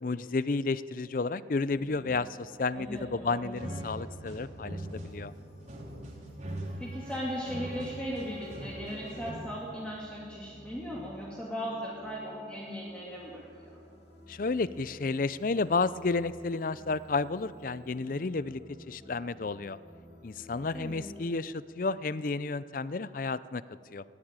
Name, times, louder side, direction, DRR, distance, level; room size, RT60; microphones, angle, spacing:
voice 1, 0.0-5.3 14.3-18.6 18.9-19.8 20.2-23.6 23.9-24.0, left 3 dB, 50° left, 17 dB, 0.5 m, -31 dB
sound 1, 1.7-21.3, equal, 75° left, 2.8 m, -53 dB
voice 2, 2.7-3.5 6.8-13.8 20.7-21.1, equal, 5° left, -5 dB, 2.6 m, -38 dB
sound 2, 3.6-9.3, right 1 dB, 40° right, 3.3 m, -41 dB
19.5 x 15.0 x 9.0 m, 2.5 s
head